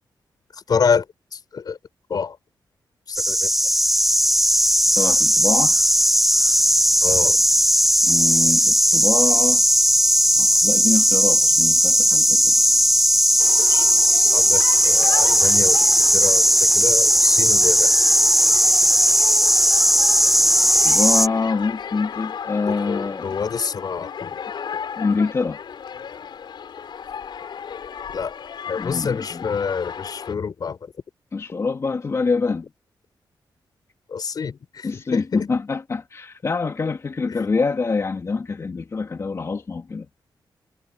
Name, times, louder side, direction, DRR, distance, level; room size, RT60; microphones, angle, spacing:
voice 1, 0.7-1.0 1.3-1.8 2.1-2.4 3.1-3.5 7.0-7.4 13.7-13.9 14.2-15.8 16.1-16.4 16.7-17.9 22.7-24.4 28.1-28.3 28.7-30.8 34.1-35.5, left 6 dB, 55° left, 5.6 m, -27 dB
sound 1, 3.1-21.3, equal, ahead, 0.4 m, -17 dB
voice 2, 5.0-5.8 8.0-9.6 10.4-12.5 20.8-23.4 25.0-25.6 28.8-29.5 31.3-32.7 34.8-40.1, left 4 dB, 40° left, 2.7 m, -25 dB
sound 2, 13.4-30.3, left 7 dB, 70° left, 5.7 m, -34 dB
wide cardioid pair, 125°, 8 cm